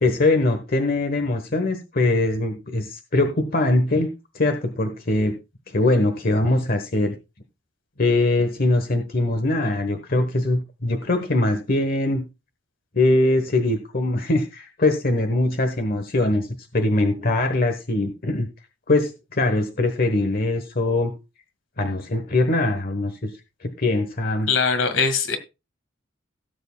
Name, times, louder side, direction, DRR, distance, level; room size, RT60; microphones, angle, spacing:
voice 1, 0.0-4.1 4.3-5.3 5.7-7.1 8.0-12.2 12.9-16.5 16.7-18.5 18.9-21.1 21.8-23.3 23.6-24.5, left 2 dB, 50° left, 1.2 m, -22 dB
voice 2, 24.5-25.4, left 5 dB, 75° left, 1.8 m, -21 dB
17.5 x 7.9 x 2.3 m
head